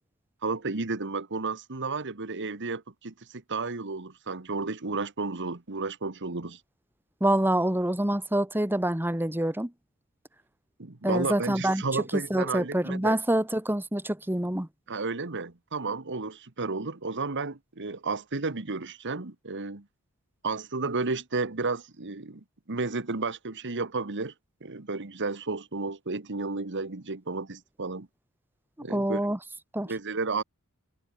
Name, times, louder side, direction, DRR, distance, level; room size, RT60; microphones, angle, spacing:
voice 1, 0.4-6.6 10.8-13.2 14.9-19.8 20.4-24.3 24.6-28.1 28.8-29.2 29.8-30.4, right 3 dB, 55° right, 1.5 m, -32 dB
voice 2, 7.2-9.7 11.0-11.8 12.1-14.7 28.9-29.4 29.7-29.9, right 1 dB, 10° right, 1.6 m, -26 dB
head